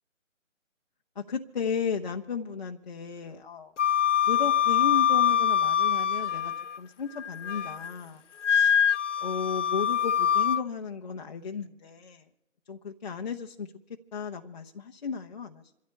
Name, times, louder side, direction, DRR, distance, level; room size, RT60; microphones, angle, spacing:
voice 1, 1.2-3.7 4.3-8.2 8.5-8.8 9.2-12.3 12.7-13.7 14.1-15.6, left 6 dB, 35° left, 0.8 m, -34 dB
Wind instrument woodwind instrument, 3.8-6.8 7.2-7.9 8.4-10.6, left 9 dB, 65° left, 0.5 m, -24 dB
28.5 x 13.0 x 3.2 m
figure-of-eight pair, 155°, 38 cm